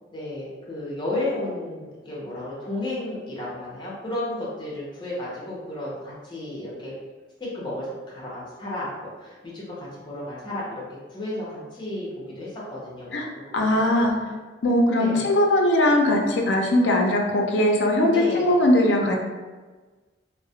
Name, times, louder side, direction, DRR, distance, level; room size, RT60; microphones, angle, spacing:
voice 1, 0.1-6.9 7.4-10.8 11.1-13.2 13.7-13.8 14.2-14.3 15.0-15.2 18.1-18.5, left 1 dB, 25° left, -7 dB, 0.7 m, -33 dB
voice 2, 13.5-14.1 14.6-19.2, left 1 dB, 80° left, 1 dB, 0.4 m, -20 dB
2.3 x 2.0 x 2.7 m, 1.3 s
head